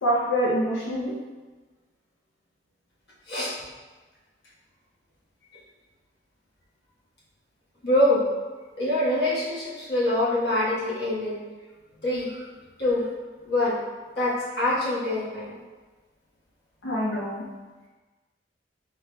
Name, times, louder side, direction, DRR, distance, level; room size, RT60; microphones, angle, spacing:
voice 1, 0.0-1.1 16.8-17.4, equal, 85° left, -6 dB, 0.6 m, -25 dB
voice 2, 7.8-8.3 8.8-11.4 12.0-12.4 12.8-13.1 13.4-13.8 14.2-15.5, left 1 dB, 65° left, -7 dB, 1.2 m, -24 dB
4.8 x 3.5 x 2.2 m, 1.3 s
head